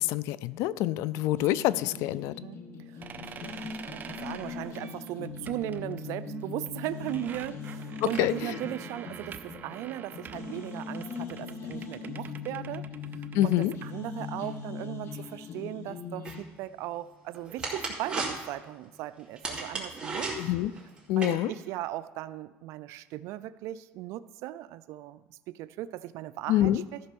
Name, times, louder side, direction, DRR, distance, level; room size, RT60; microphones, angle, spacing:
voice 1, 0.0-2.3 8.0-8.6 13.3-13.7 20.4-20.7 21.1-21.5 26.5-26.8, left 14 dB, 75° left, 19 dB, 0.4 m, -26 dB
sound 1, 1.4-16.4, left 5 dB, 55° left, 1.4 m, -40 dB
voice 2, 2.9-12.8 13.4-20.5 21.2-27.0, right 14 dB, 70° right, 15 dB, 0.5 m, -38 dB
sound 2, 3.0-13.9, right 7 dB, 35° right, 0.7 m, -46 dB
sound 3, 16.2-21.3, right 3 dB, 20° right, 2.7 m, -37 dB
13.5 x 5.3 x 6.0 m, 1.2 s
supercardioid pair, 105°, 5 cm